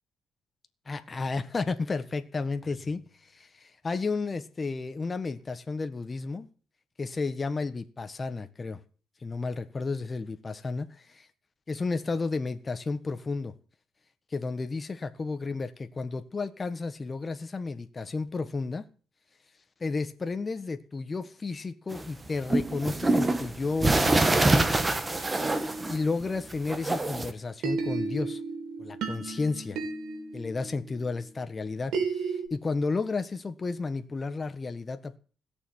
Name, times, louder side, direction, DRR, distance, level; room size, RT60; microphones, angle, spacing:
voice 1, 0.8-3.0 3.3-6.5 7.0-8.8 9.2-11.3 11.7-13.5 14.3-18.8 19.8-24.7 25.9-28.4 28.8-29.8 30.3-35.2, left 4 dB, 30° left, 1.6 m, -32 dB
sound 1, 21.9-26.2 26.5-27.3, right 2 dB, 20° right, 1.7 m, -25 dB
sound 2, 25.4-27.2 27.6-32.5, right 4 dB, 85° right, 4.2 m, -35 dB
17.0 x 7.1 x 8.8 m
cardioid pair, 90°, 0 cm